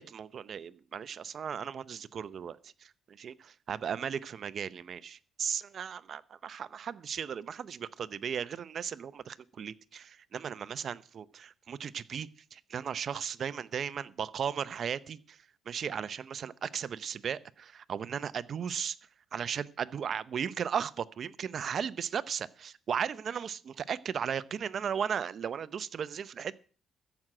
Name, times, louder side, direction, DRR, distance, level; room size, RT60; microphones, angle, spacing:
voice 1, 0.0-19.0 19.3-26.6, right 7 dB, 55° right, 17 dB, 0.6 m, -36 dB
14.0 x 6.1 x 8.8 m, 0.42 s
cardioid pair, 90°, 0 cm